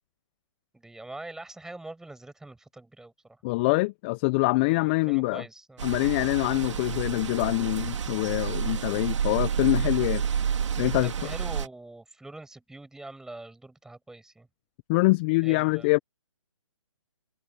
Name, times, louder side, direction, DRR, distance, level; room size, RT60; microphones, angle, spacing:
voice 1, 0.7-3.4 4.6-5.9 10.9-14.5 15.4-16.0, right 2 dB, 5° right, 7.1 m, -44 dB
voice 2, 3.4-5.4 5.8-10.2 10.8-11.3 14.9-16.0, left 24 dB, 20° left, 0.5 m, -25 dB
sound 1, 5.8-11.7, right 7 dB, 60° right, 2.3 m, -29 dB
hypercardioid pair, 145°, 17 cm